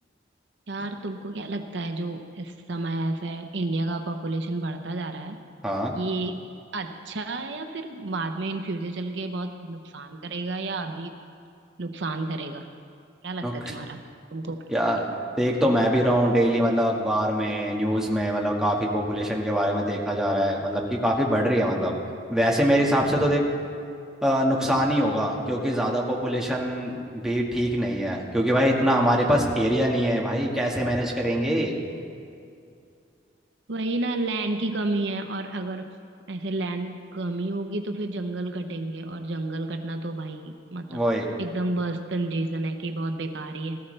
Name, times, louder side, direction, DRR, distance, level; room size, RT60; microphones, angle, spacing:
voice 1, 0.7-5.4 5.9-11.1 11.8-12.7 13.2-14.0 14.3-14.7 33.7-35.9 36.3-41.0 41.4-43.8, right 2 dB, 70° right, 6 dB, 0.8 m, -31 dB
voice 2, 14.7-15.1 15.4-21.9 22.3-23.4 24.2-31.7 40.9-41.3, equal, 5° right, -3 dB, 1.7 m, -23 dB
18.5 x 14.0 x 3.3 m, 2.4 s
head